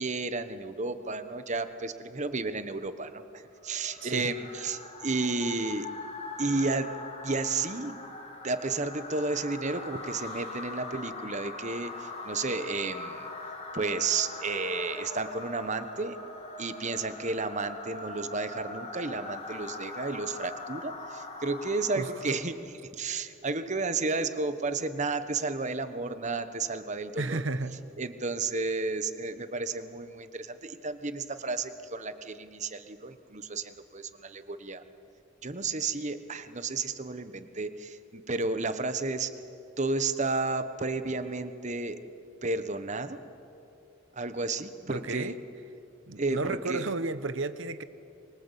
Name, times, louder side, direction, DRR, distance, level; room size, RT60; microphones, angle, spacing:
voice 1, 0.0-5.9 6.4-6.9 7.2-8.0 8.4-13.3 13.7-16.2 16.6-27.4 28.0-34.8 35.4-39.3 39.8-42.0 42.4-43.2 44.1-45.4 46.2-46.9, right 3 dB, 35° right, 10 dB, 1.2 m, -32 dB
sound 1, 3.6-22.5, left 3 dB, 30° left, 2.9 m, -42 dB
voice 2, 4.0-4.3 22.0-22.1 27.2-27.8 44.9-45.4 46.1-47.8, right 3 dB, 65° right, 13 dB, 1.1 m, -33 dB
25.0 x 23.5 x 8.3 m, 2.7 s
head